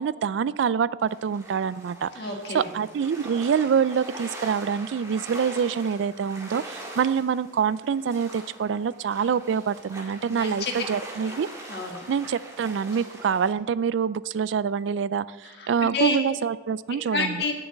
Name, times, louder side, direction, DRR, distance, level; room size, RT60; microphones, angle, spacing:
voice 1, 0.0-2.1 2.5-11.5 12.1-17.4, right 7 dB, 85° right, 18 dB, 0.3 m, -26 dB
sound 1, 1.1-13.5, right 1 dB, 15° right, 2.0 m, -42 dB
voice 2, 2.1-2.7 10.3-10.7 11.2-11.3 11.7-12.1 15.4-16.2 17.1-17.5, left 3 dB, 60° left, 2 dB, 1.6 m, -29 dB
9.6 x 7.0 x 7.8 m, 1.4 s
head